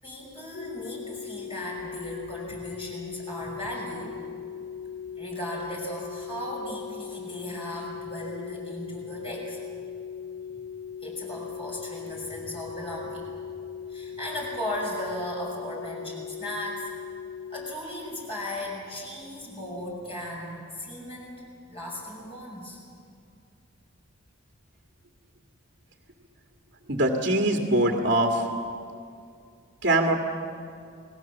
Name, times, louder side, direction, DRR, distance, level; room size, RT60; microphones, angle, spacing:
voice 1, 0.0-4.2 5.2-9.6 11.0-13.2 13.9-16.9 17.5-22.8, equal, 25° left, -3 dB, 6.0 m, -36 dB
sound 1, 0.5-17.7, left 7 dB, 70° left, 1.1 m, -39 dB
voice 2, 26.9-28.5 29.8-30.2, right 1 dB, 50° right, 1 dB, 2.1 m, -22 dB
28.5 x 20.5 x 7.3 m, 2.3 s
head